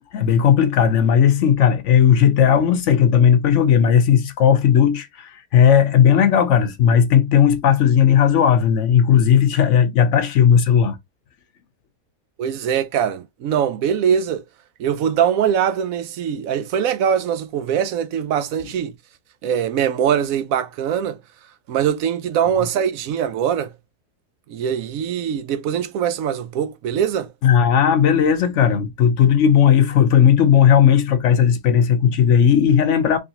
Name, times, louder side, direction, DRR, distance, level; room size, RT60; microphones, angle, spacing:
voice 1, 0.1-11.0 27.4-33.2, left 8 dB, 60° left, 0.9 m, -15 dB
voice 2, 12.4-14.4 14.8-18.9 19.4-21.2 21.7-23.7 24.5-27.3, right 8 dB, 70° right, 0.9 m, -22 dB
3.5 x 3.4 x 2.7 m
omnidirectional pair, 1.6 m